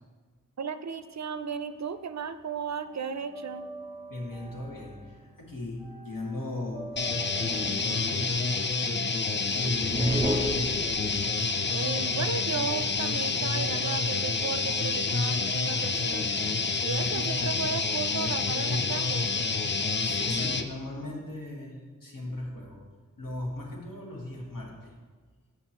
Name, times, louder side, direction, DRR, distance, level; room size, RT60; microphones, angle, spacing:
voice 1, 0.6-3.7 11.7-16.3 16.8-19.3, right 6 dB, 55° right, 11 dB, 0.4 m, -35 dB
sound 1, 1.0-2.1 2.3-10.3, right 2 dB, ahead, 1.1 m, -46 dB
voice 2, 4.1-6.9 7.4-8.5 9.2-10.3 20.0-22.8 23.2-24.9, left 1 dB, 75° left, -2 dB, 1.7 m, -38 dB
sound 2, 7.0-20.7, left 4 dB, 35° left, 0.5 m, -28 dB
sound 3, 9.8-11.4, equal, 20° right, 0.7 m, -29 dB
7.4 x 5.7 x 4.4 m, 1.4 s
wide cardioid pair, 55°, 33 cm